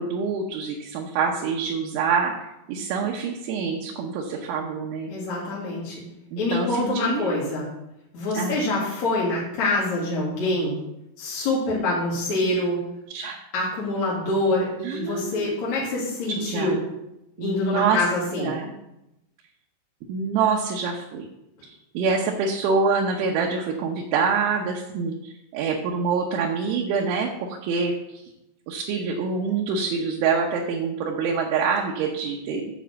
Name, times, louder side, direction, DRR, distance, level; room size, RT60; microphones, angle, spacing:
voice 1, 0.0-5.1 6.3-7.4 8.3-8.6 13.1-13.4 14.8-15.6 16.4-16.8 17.4-18.0 18.4-18.7 20.1-21.3 21.7-28.2 28.7-32.7, right 5 dB, 80° right, -1 dB, 3.3 m, -26 dB
voice 2, 5.1-6.0 6.4-7.7 8.1-10.8 11.2-12.8 13.5-16.8 17.4-18.6, left 2 dB, 50° left, -6 dB, 2.7 m, -25 dB
9.3 x 5.5 x 7.4 m, 0.88 s
omnidirectional pair, 5.4 m